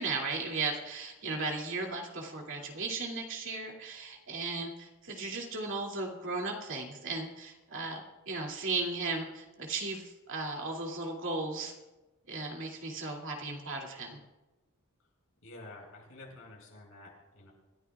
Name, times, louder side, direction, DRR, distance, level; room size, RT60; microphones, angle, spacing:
voice 1, 0.0-8.0 8.3-11.7 12.3-14.2, right 3 dB, 60° right, 0 dB, 2.6 m, -36 dB
voice 2, 15.4-17.5, left 2 dB, 70° left, -1 dB, 5.3 m, -50 dB
27.0 x 14.5 x 2.4 m, 1.1 s
head